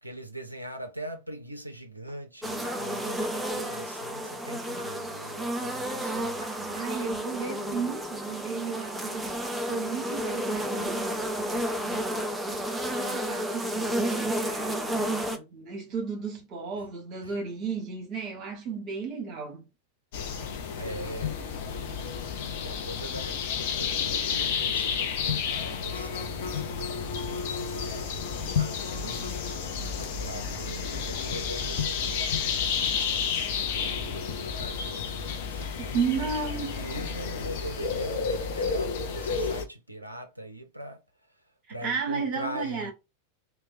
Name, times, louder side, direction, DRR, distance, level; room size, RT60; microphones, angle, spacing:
voice 1, 0.0-6.8 16.8-16.9 17.2-17.4 20.8-29.5 30.2-35.6 36.1-41.0 41.3-41.4 41.7-42.9, right 1 dB, 85° right, 0.4 m, -42 dB
Walk footsteps, 2.1-2.3 2.6-2.8 3.2-3.4 3.7-3.9 4.2-4.4 4.8-5.0 5.3-5.5 5.9-6.1 6.4-6.6 6.9-7.1 7.5-7.7 8.0-8.2, equal, 85° left, 0.8 m, -52 dB
sound 1, 2.4-15.4, right 1 dB, 10° right, 0.5 m, -31 dB
voice 2, 6.7-9.3 9.7-12.3 13.0-19.7 35.8-36.8 41.7-42.9, right 5 dB, 35° right, 1.2 m, -34 dB
sound 2, 20.1-39.7, left 6 dB, 50° left, 0.5 m, -31 dB
3.0 x 2.2 x 2.6 m
figure-of-eight pair, 90°, 0 cm